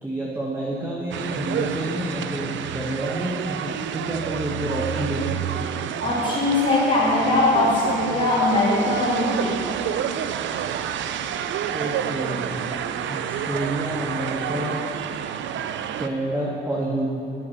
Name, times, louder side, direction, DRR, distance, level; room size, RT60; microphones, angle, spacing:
voice 1, 0.0-5.4 11.7-12.6 13.1-14.8 16.0-17.1, right 1 dB, 10° right, -4 dB, 1.3 m, -29 dB
sound 1, 1.1-16.1, right 9 dB, 70° right, 0.5 m, -29 dB
voice 2, 6.0-9.6, left 2 dB, 40° left, -9 dB, 2.6 m, -21 dB
9.5 x 7.1 x 6.5 m, 2.9 s
cardioid pair, 90°, 20 cm